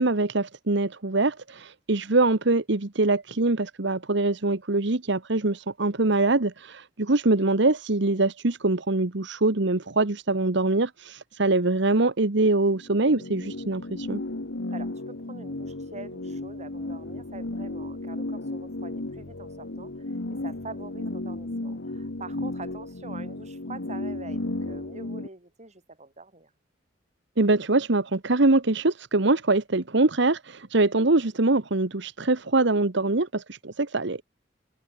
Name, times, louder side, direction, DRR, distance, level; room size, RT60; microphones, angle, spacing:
voice 1, 0.0-14.2 27.4-34.2, right 2 dB, 70° right, 1.3 m, -23 dB
sound 1, 12.8-25.3, left 2 dB, 70° left, 1.4 m, -34 dB
voice 2, 14.7-26.5, right 3 dB, 40° right, 7.9 m, -45 dB
head